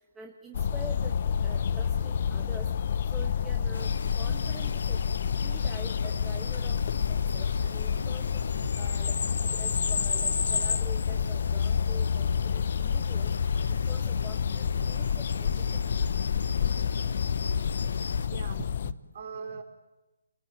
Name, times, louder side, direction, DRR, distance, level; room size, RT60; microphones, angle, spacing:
voice 1, 0.0-2.7 3.1-5.0 5.4-6.8 7.1-8.4 8.7-13.3 13.7-16.0, right 2 dB, 10° right, 0 dB, 1.6 m, -46 dB
sound 1, 0.5-18.9, left 7 dB, 45° left, 0.8 m, -29 dB
sound 2, 3.7-18.3, left 5 dB, 70° left, 1.4 m, -34 dB
voice 2, 18.3-19.6, right 5 dB, 45° right, 6 dB, 3.5 m, -42 dB
28.5 x 19.5 x 9.1 m, 1.1 s
hypercardioid pair, 160°, 0 cm